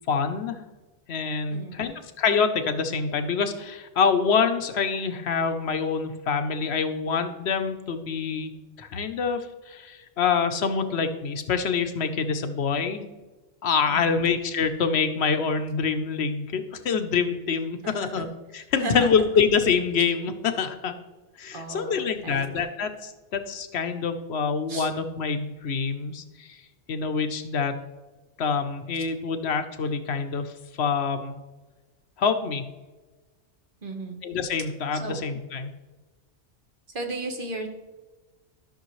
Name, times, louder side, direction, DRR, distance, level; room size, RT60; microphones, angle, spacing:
voice 1, 0.1-0.6 1.1-8.5 8.8-13.0 13.6-18.3 18.5-20.9 21.4-26.6 26.9-27.7 28.4-30.5 30.8-31.4 32.2-32.6 34.2-35.7, left 5 dB, 65° left, 8 dB, 1.0 m, -26 dB
voice 2, 1.5-1.9 13.9-14.3 17.8-18.2 18.8-19.2 21.5-22.7 24.7-24.9 33.8-34.2 35.0-35.2 36.9-37.7, right 2 dB, 50° right, 3 dB, 1.5 m, -35 dB
13.0 x 6.3 x 3.1 m, 1.2 s
omnidirectional pair, 1.2 m